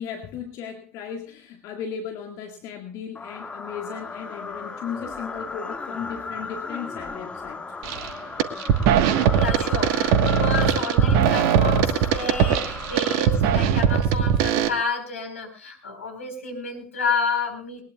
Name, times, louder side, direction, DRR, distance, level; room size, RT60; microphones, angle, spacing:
voice 1, 0.0-7.6, left 7 dB, 50° left, 4 dB, 1.9 m, -36 dB
sound 1, 3.2-13.9, left 4 dB, 15° left, 1.9 m, -36 dB
sound 2, 7.8-8.1 8.4-14.7, right 8 dB, 55° right, 1.4 m, -20 dB
voice 2, 9.3-17.8, left 4 dB, 75° left, 4 dB, 4.4 m, -30 dB
21.0 x 19.5 x 2.4 m, 0.35 s
figure-of-eight pair, 75°, 7 cm